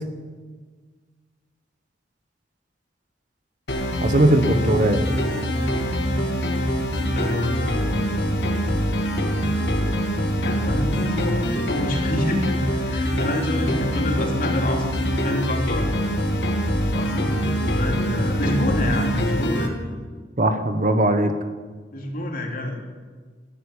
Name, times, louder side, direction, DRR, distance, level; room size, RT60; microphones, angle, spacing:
sound 1, 3.7-19.7, equal, 65° left, 2.2 m, -24 dB
voice 1, 4.0-5.1 20.4-21.3, right 1 dB, 45° right, 8 dB, 1.2 m, -19 dB
voice 2, 7.1-7.8 10.4-15.9 16.9-19.7 21.9-22.8, left 1 dB, 50° left, 1 dB, 3.1 m, -27 dB
14.5 x 11.0 x 8.7 m, 1.5 s
head